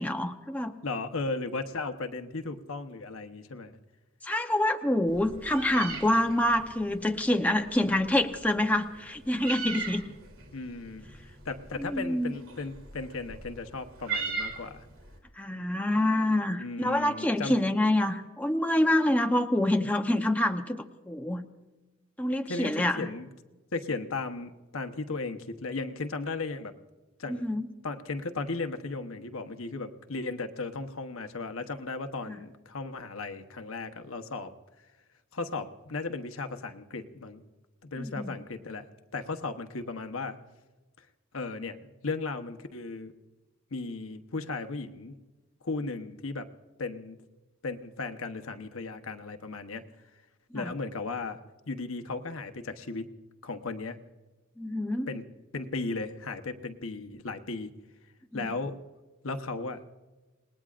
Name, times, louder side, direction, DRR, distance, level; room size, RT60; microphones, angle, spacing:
voice 1, 0.0-0.7 4.2-10.0 11.8-12.4 15.4-21.4 22.2-23.1 27.3-27.7 32.3-32.4 38.0-38.4 50.5-50.7 54.6-55.1 58.3-58.5, left 1 dB, 5° left, 4 dB, 0.8 m, -27 dB
voice 2, 0.8-3.7 10.1-10.2 10.5-11.1 11.4-14.8 16.6-17.6 22.5-23.3 23.7-26.7 27.2-27.4 27.8-34.5 35.3-37.4 37.8-38.9 39.1-40.4 41.3-43.1 43.7-45.1 45.6-46.5 46.8-47.2 47.6-49.8 50.5-51.4 51.7-53.0 53.4-54.0 55.1-55.2 55.5-57.7 58.3-58.8 59.2-59.8, left 3 dB, 75° left, 7 dB, 1.0 m, -36 dB
Meow, 5.1-15.2, right 4 dB, 80° right, 3.0 m, -40 dB
27.5 x 20.0 x 2.5 m, 1.2 s
head